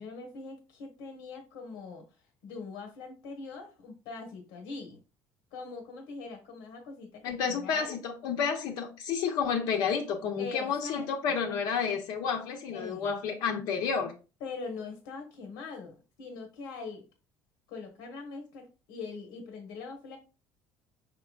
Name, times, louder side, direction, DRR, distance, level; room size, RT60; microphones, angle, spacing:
voice 1, 0.0-2.0 2.4-5.0 5.5-7.9 10.4-11.4 12.7-13.2 14.4-17.0 17.7-20.2, left 4 dB, 90° left, 3 dB, 1.3 m, -42 dB
voice 2, 7.2-14.1, left 6 dB, 70° left, 3 dB, 0.9 m, -30 dB
5.5 x 3.8 x 2.4 m, 0.32 s
cardioid pair, 150°, 7 cm